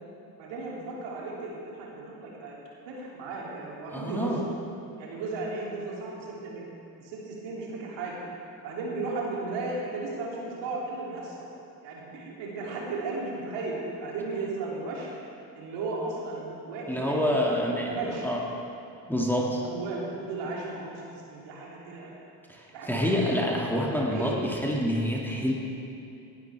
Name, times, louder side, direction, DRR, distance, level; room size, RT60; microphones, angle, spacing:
voice 1, 0.4-2.6 2.9-4.5 5.0-6.6 7.0-8.2 8.6-11.4 11.8-15.1 15.5-18.3 19.4-22.1 22.7-23.3 23.6-24.4, right 3 dB, 60° right, -4 dB, 3.2 m, -35 dB
voice 2, 3.9-4.4 16.9-17.9 18.2-18.4 19.1-19.6 22.5-25.5, equal, 5° left, -3 dB, 2.2 m, -27 dB
18.5 x 11.5 x 3.5 m, 2.7 s
hypercardioid pair, 55°, 49 cm